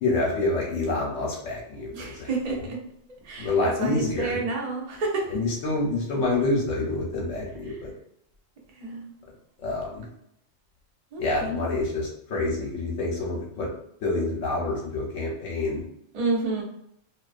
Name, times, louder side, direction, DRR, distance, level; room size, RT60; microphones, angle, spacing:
voice 1, 0.0-2.6 3.4-4.4 5.3-7.9 9.6-10.0 11.2-13.7 14.0-15.8, left 2 dB, 75° left, -3 dB, 1.0 m, -27 dB
voice 2, 1.9-2.8 3.2-5.3 7.7-7.8 8.7-9.1 11.1-11.6 16.1-16.6, right 3 dB, 50° right, -1 dB, 0.5 m, -30 dB
2.3 x 2.3 x 2.4 m, 0.75 s
omnidirectional pair, 1.3 m